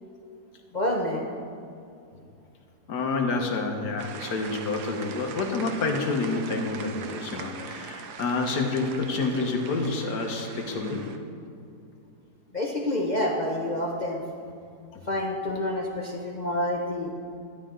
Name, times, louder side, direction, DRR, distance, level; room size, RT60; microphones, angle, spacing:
voice 1, 0.7-1.2 12.5-14.2 15.1-17.1, left 1 dB, 45° left, 0 dB, 0.5 m, -28 dB
voice 2, 2.9-11.1 14.9-15.0, left 3 dB, 80° left, 3 dB, 1.7 m, -28 dB
sound 1, 4.0-11.2, right 6 dB, 75° right, 1.3 m, -41 dB
12.0 x 10.5 x 3.7 m, 2.4 s
omnidirectional pair, 1.8 m